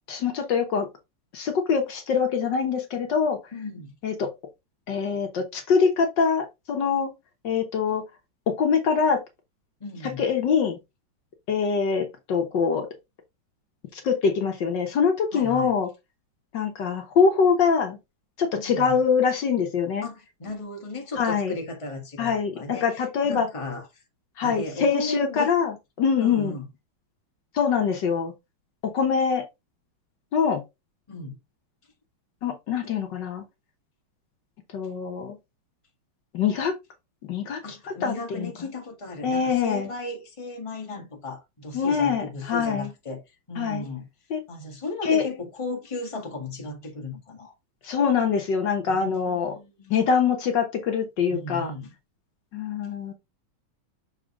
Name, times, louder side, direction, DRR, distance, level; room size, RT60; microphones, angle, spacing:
voice 1, 0.1-0.9 1.3-3.4 4.0-4.3 4.9-7.1 7.4-8.0 8.5-9.2 10.2-10.8 11.5-12.9 13.9-15.9 16.5-18.0 18.4-20.1 21.2-21.5 22.2-23.5 24.4-26.5 27.5-28.3 28.8-29.4 30.3-30.6 32.4-33.4 34.7-35.4 36.3-36.7 37.3-38.5 39.2-39.9 41.7-42.9 43.6-43.8 44.3-44.4 45.0-45.2 47.8-49.5 49.9-51.7 52.5-53.1, left 6 dB, 65° left, 1.6 m, -24 dB
voice 2, 3.5-4.0 9.8-10.2 15.3-15.7 18.6-19.0 20.0-23.9 24.4-25.5 26.2-26.7 31.1-31.4 37.6-43.2 43.5-44.1 44.5-47.5 48.9-50.0 51.3-51.9, left 2 dB, 15° left, 1.5 m, -35 dB
6.6 x 4.2 x 3.7 m
omnidirectional pair, 2.2 m